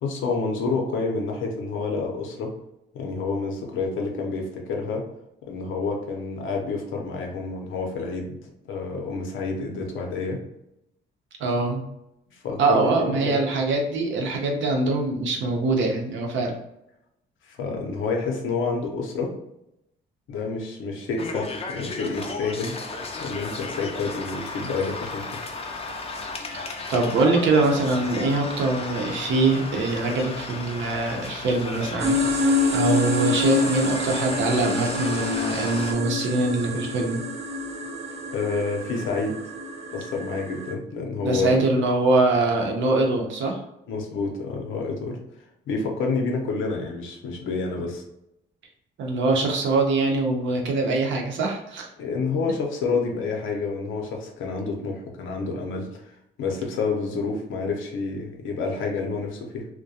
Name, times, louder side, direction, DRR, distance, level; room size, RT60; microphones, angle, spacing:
voice 1, 0.0-2.5 2.9-5.0 5.5-8.4 8.7-10.4 12.4-13.3 17.4-19.3 20.3-22.9 23.2-25.5 38.3-39.4 39.9-41.7 43.9-45.2 45.7-48.0 52.0-56.1 56.4-59.7, left 4 dB, 80° left, 1 dB, 0.7 m, -28 dB
voice 2, 11.4-11.8 12.6-16.6 26.9-37.2 41.2-43.6 49.0-51.9, right 3 dB, 70° right, 1 dB, 0.7 m, -23 dB
sound 1, 21.2-35.9, left 3 dB, 30° left, 0.4 m, -34 dB
sound 2, 32.0-40.7, left 2 dB, 35° right, 0.4 m, -27 dB
2.3 x 2.1 x 2.7 m, 0.83 s
cardioid pair, 90°, 20 cm